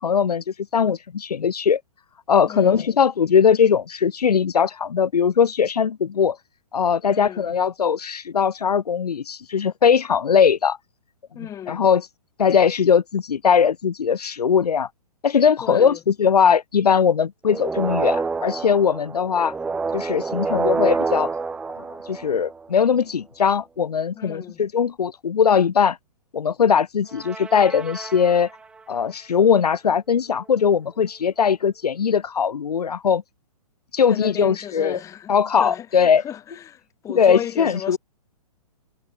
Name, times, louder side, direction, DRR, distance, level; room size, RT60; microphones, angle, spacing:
voice 1, 0.0-1.8 2.3-6.4 6.7-10.8 11.4-12.0 12.4-14.9 15.2-19.5 19.9-21.3 21.8-26.0 26.3-28.5 28.9-33.2 33.9-35.0 35.3-36.2 37.1-38.0, left 7 dB, 80° left, 0.7 m, -20 dB
voice 2, 2.5-2.9 7.1-7.5 11.3-11.8 15.6-16.0 24.1-24.6 34.1-35.3 35.6-38.0, left 10 dB, 15° left, 1.1 m, -34 dB
sound 1, 17.4-22.8 27.1-28.8, right 4 dB, 5° right, 0.4 m, -27 dB
hypercardioid pair, 125°, 20 cm